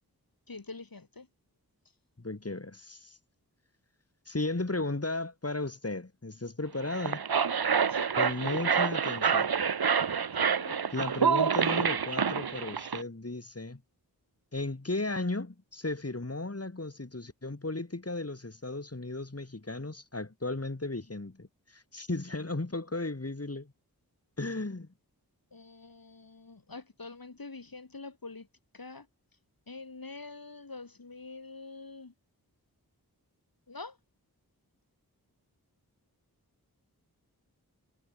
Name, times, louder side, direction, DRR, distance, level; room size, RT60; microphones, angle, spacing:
voice 1, 0.5-1.3 7.7-8.1 10.4-10.8 25.5-28.5 28.7-29.1 29.7-32.1 33.7-34.0, left 3 dB, 65° left, 7.2 m, -45 dB
voice 2, 2.2-3.2 4.3-7.2 8.2-9.5 10.9-13.8 14.5-23.7 24.4-24.9, left 2 dB, 40° left, 6.6 m, -35 dB
sound 1, 6.8-13.0, right 6 dB, 75° right, 1.1 m, -27 dB
wide cardioid pair, 50°, 38 cm